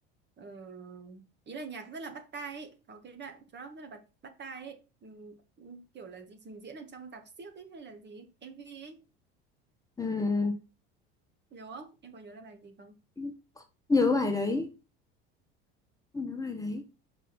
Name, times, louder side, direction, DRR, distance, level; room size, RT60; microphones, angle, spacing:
voice 1, 0.4-9.0 11.5-12.9, right 4 dB, 35° right, 1.6 m, -45 dB
voice 2, 10.0-10.5 13.2-13.6 13.9-14.7 16.1-16.8, left 3 dB, 10° left, 1.1 m, -28 dB
5.5 x 5.0 x 4.3 m
hypercardioid pair, 75°, 30 cm